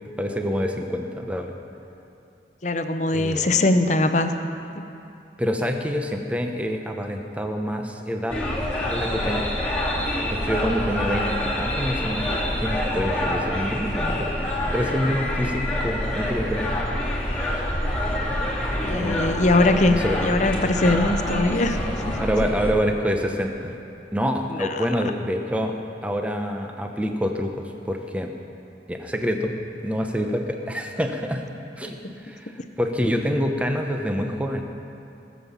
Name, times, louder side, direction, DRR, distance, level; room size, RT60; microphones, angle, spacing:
voice 1, 0.2-1.5 3.1-3.5 5.4-8.4 8.9-9.4 10.3-11.2 11.6-12.3 12.6-14.4 14.7-16.7 19.0-19.4 19.9-20.2 22.2-23.8 24.1-25.7 26.0-28.3 28.9-29.5 29.8-31.4 31.8-34.7, equal, 5° right, 3 dB, 0.8 m, -26 dB
voice 2, 2.6-4.3 4.7-4.8 18.8-21.8 22.1-22.5 24.5-24.8 31.8-32.1, left 2 dB, 40° left, 8 dB, 0.7 m, -22 dB
sound 1, 8.3-22.7, left 1 dB, 10° left, 2.4 m, -26 dB
18.0 x 7.4 x 7.1 m, 2.6 s
head